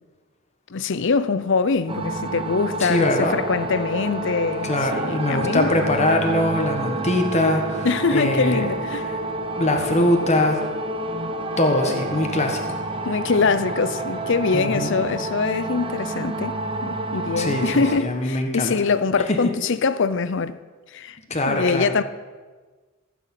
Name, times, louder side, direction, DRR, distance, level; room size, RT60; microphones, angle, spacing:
voice 1, 0.7-5.8 7.8-9.1 13.0-20.6 20.9-21.2 21.5-22.0, left 4 dB, 65° left, 0.6 m, -23 dB
sound 1, 1.9-18.0, right 2 dB, 25° right, 1.0 m, -29 dB
voice 2, 2.8-3.4 4.6-8.7 9.1-9.2 9.6-10.6 11.6-12.8 14.5-15.0 17.4-18.7 21.3-21.8, left 1 dB, 35° left, 1.5 m, -22 dB
15.5 x 7.0 x 9.0 m
head